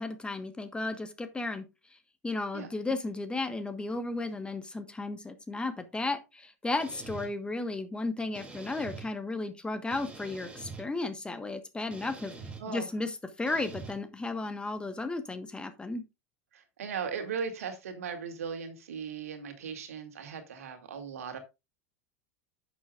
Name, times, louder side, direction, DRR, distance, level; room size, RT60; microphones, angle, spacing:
voice 1, 0.0-1.6 2.2-12.3 12.7-13.1 13.4-16.0, left 2 dB, 10° left, 1.2 m, -34 dB
sound 1, 6.8-7.3 8.3-9.1 9.9-10.8 11.9-12.6 13.5-13.9, right 4 dB, 15° right, 2.5 m, -44 dB
voice 2, 16.5-21.4, right 6 dB, 70° right, 2.1 m, -38 dB
11.0 x 7.1 x 2.4 m
figure-of-eight pair, 80°, 8 cm